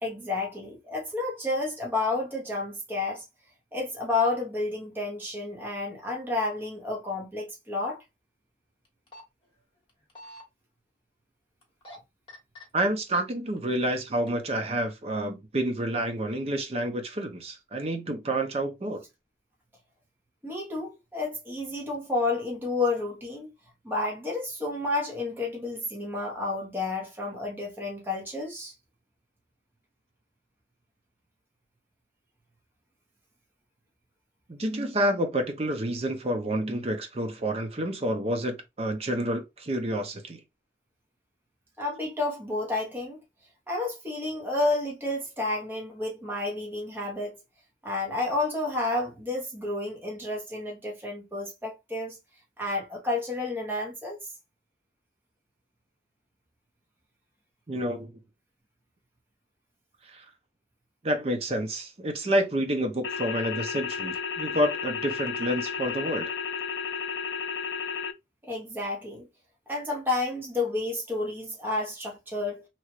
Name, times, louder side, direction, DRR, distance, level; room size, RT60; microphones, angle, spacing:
voice 1, 0.0-3.2 3.7-8.0 20.4-23.5 23.8-28.7 41.8-43.2 43.7-47.3 47.8-52.2 52.6-54.2 68.4-69.3 69.7-72.6, left 2 dB, 10° right, 0.9 m, -30 dB
sound 1, 8.8-9.2 9.9-10.4 11.6-12.0 12.3-12.6 13.4-13.9 14.3-14.4, left 1 dB, 30° left, 1.2 m, -45 dB
voice 2, 12.7-19.0 34.5-40.4 57.7-58.1 60.1-60.2 61.0-66.3, right 1 dB, 35° right, 0.5 m, -29 dB
sound 2, 63.0-68.1, left 6 dB, 70° left, 0.5 m, -32 dB
2.9 x 2.4 x 2.9 m
head